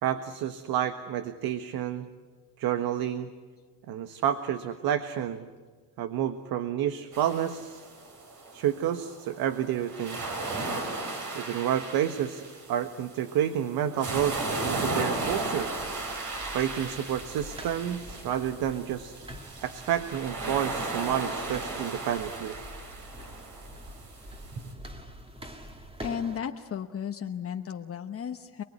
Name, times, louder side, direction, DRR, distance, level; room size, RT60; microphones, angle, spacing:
voice 1, 0.0-2.1 2.6-3.3 3.9-5.5 6.0-7.8 8.5-10.3 11.3-15.7 16.5-19.2 19.6-22.5, right 10 dB, 75° right, 9 dB, 1.4 m, -30 dB
sound 1, 7.1-24.7, right 2 dB, 55° right, 6.7 m, -36 dB
sound 2, 14.8-26.4, equal, 15° right, 2.3 m, -46 dB
voice 2, 26.0-28.6, left 8 dB, 40° left, 5 dB, 1.1 m, -34 dB
28.5 x 20.5 x 9.7 m, 1.5 s
cardioid pair, 125°, 37 cm